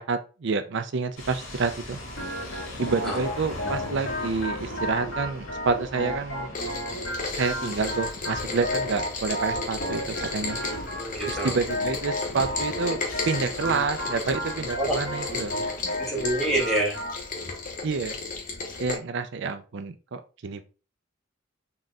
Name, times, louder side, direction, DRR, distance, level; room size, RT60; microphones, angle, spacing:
voice 1, 0.0-2.0 2.8-6.6 7.4-10.6 11.3-15.6 17.8-18.2 18.8-20.7, right 4 dB, 65° right, 9 dB, 0.5 m, -28 dB
sound 1, 1.2-15.8, left 1 dB, 90° left, 1.7 m, -41 dB
Organ, 2.2-17.2, left 1 dB, 70° left, 1.8 m, -33 dB
Rain, 6.5-19.0, left 3 dB, 40° left, 0.9 m, -35 dB
voice 2, 10.6-11.5 14.8-15.0 16.0-17.0, right 1 dB, ahead, -4 dB, 1.4 m, -27 dB
4.1 x 3.8 x 2.4 m, 0.33 s
head